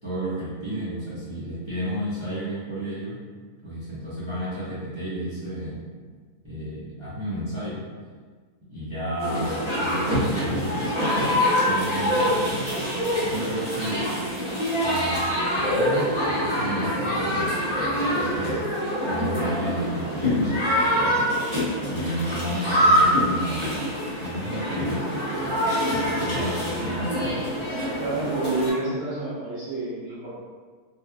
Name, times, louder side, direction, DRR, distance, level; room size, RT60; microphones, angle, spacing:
voice 1, 0.0-3.2 3.6-5.8 6.4-7.8 8.7-12.6 13.1-14.1 14.8-15.3 15.5-18.7 19.1-21.2 21.9-23.8 24.2-25.3 25.9-27.4, right 1 dB, 25° right, -12 dB, 0.6 m, -32 dB
sound 1, 9.2-28.7, equal, 25° left, 0.8 m, -25 dB
voice 2, 28.0-30.3, right 2 dB, 80° right, -9 dB, 1.4 m, -29 dB
3.2 x 2.7 x 2.2 m, 1.5 s
omnidirectional pair, 1.6 m